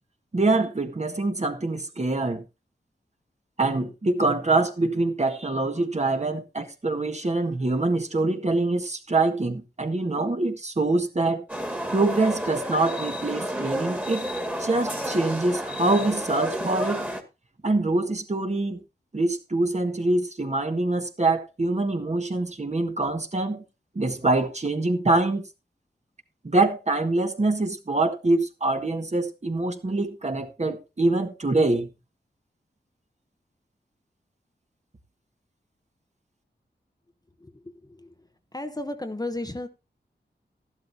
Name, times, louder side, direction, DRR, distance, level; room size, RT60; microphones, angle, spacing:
voice 1, 0.3-2.4 3.6-11.4 11.9-14.3 14.6-17.1 17.6-18.8 19.1-23.6 24.0-25.4 26.4-31.9, right 2 dB, 40° right, 1.7 m, -24 dB
sound 1, 11.5-17.2, equal, 10° right, 2.1 m, -31 dB
voice 2, 38.5-39.7, left 2 dB, 20° left, 1.0 m, -32 dB
13.5 x 12.0 x 2.8 m
wide cardioid pair, 65°, 18 cm